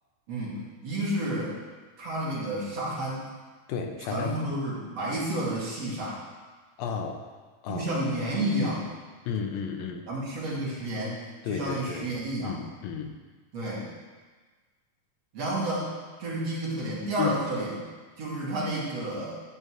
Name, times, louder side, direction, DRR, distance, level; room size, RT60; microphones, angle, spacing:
voice 1, 0.3-1.5 2.0-3.3 4.1-6.2 7.7-8.9 10.1-11.2 11.5-12.6 13.5-13.9 15.3-15.9 16.2-17.8 18.2-19.4, right 1 dB, 45° right, -6 dB, 3.4 m, -30 dB
voice 2, 3.7-4.4 6.8-7.2 7.6-7.9 9.3-10.1 11.4-12.1 12.4-13.2 17.2-17.3, left 6 dB, 85° left, 4 dB, 2.7 m, -32 dB
12.5 x 5.4 x 7.8 m, 1.4 s
omnidirectional pair, 4.1 m